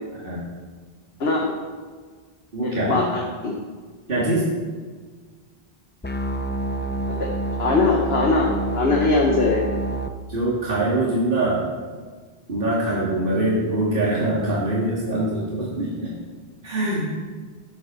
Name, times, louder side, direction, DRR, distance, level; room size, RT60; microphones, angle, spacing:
voice 1, 0.1-0.5 2.5-3.0 4.1-4.5 10.3-11.6 12.5-16.2 16.6-17.1, right 1 dB, 60° right, -7 dB, 2.6 m, -23 dB
voice 2, 1.2-1.5 2.6-3.6 7.1-7.3 7.6-9.7, left 3 dB, 75° left, 0 dB, 1.5 m, -21 dB
sound 1, 6.0-10.1, right 2 dB, 15° left, 0.5 m, -27 dB
11.0 x 9.8 x 5.6 m, 1.5 s
omnidirectional pair, 1.0 m